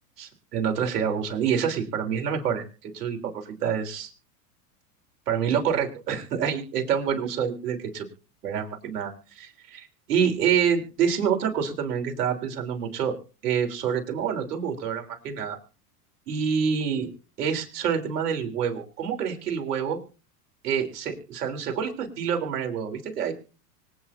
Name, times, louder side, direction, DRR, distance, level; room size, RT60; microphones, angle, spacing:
voice 1, 0.2-4.1 5.3-8.1 8.4-13.2 13.4-15.6 16.3-17.1 17.4-20.0 20.6-23.3, right 7 dB, 80° right, 3 dB, 3.6 m, -27 dB
25.0 x 9.1 x 2.6 m, 0.36 s
hypercardioid pair, 95°, 47 cm